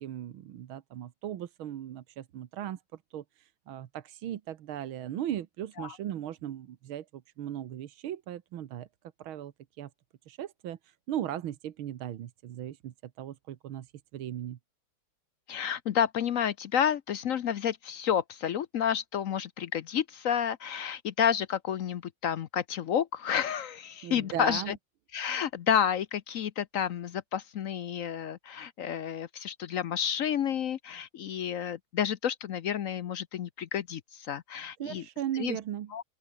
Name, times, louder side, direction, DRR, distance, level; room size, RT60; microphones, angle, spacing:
voice 1, 0.0-2.8 3.1-8.9 9.2-9.9 10.3-13.9 14.1-14.6 24.0-24.7 34.8-35.9, right 11 dB, 85° right, 1.9 m, -38 dB
voice 2, 15.5-24.8 25.1-35.0 35.3-35.6 35.9-36.0, left 9 dB, 65° left, 0.8 m, -30 dB
open air
omnidirectional pair, 2.2 m